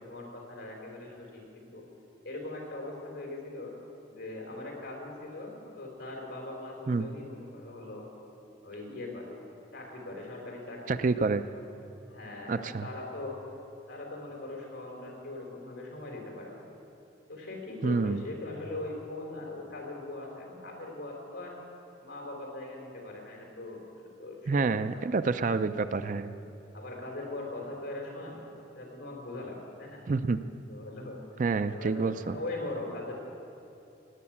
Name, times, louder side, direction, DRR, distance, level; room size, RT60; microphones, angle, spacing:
voice 1, 0.0-1.8 2.2-3.7 4.1-8.1 8.6-9.3 9.7-11.2 11.5-11.6 12.1-13.4 13.9-16.6 17.3-21.6 22.0-25.0 26.7-28.5 28.7-30.0 30.7-31.2 31.7-33.1, left 2 dB, 70° left, 0 dB, 3.7 m, -41 dB
voice 2, 10.9-11.4 12.5-12.9 17.8-18.2 24.5-26.3 30.1-30.4 31.4-32.4, right 4 dB, 40° right, 11 dB, 0.4 m, -28 dB
18.0 x 8.7 x 8.6 m, 2.9 s
head